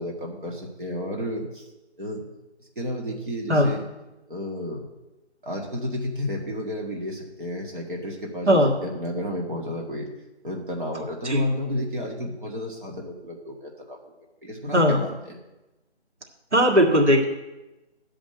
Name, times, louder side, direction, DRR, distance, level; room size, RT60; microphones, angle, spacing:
voice 1, 0.0-1.7 2.0-2.2 2.8-3.8 4.3-4.8 5.4-10.1 10.4-14.0 14.4-15.4, left 1 dB, 50° right, -1 dB, 1.9 m, -31 dB
voice 2, 16.5-17.3, equal, 90° right, 1 dB, 1.9 m, -18 dB
11.0 x 5.2 x 7.8 m, 1.0 s
figure-of-eight pair, 175°, 34 cm